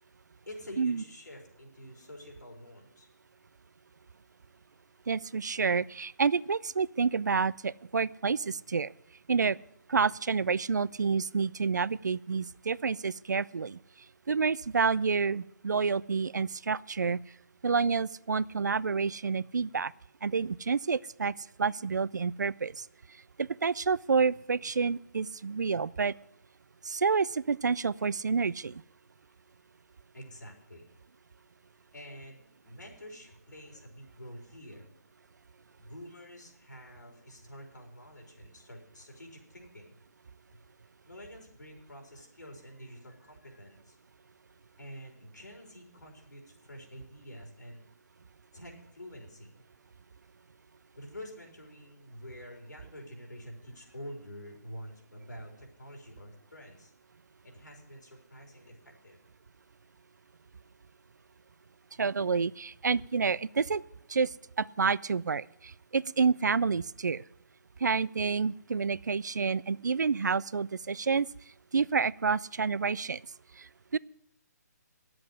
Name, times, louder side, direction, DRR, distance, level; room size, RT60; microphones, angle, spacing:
voice 1, 0.5-3.1 30.1-30.9 31.9-34.9 35.8-39.9 40.5-40.6 41.0-44.0 44.8-47.9 48.5-49.5 51.0-56.9 57.4-59.2, equal, 90° left, 1 dB, 4.2 m, -48 dB
voice 2, 5.1-8.9 9.3-9.6 9.9-13.8 14.3-17.2 17.6-19.9 20.2-21.3 21.6-22.8 23.4-26.1 26.8-28.8 62.0-63.8 64.1-64.3 64.6-67.2 67.8-71.3 71.7-73.2 73.6-74.0, right 5 dB, 80° right, 21 dB, 0.4 m, -29 dB
10.0 x 7.8 x 9.6 m, 0.76 s
figure-of-eight pair, 145°, 9 cm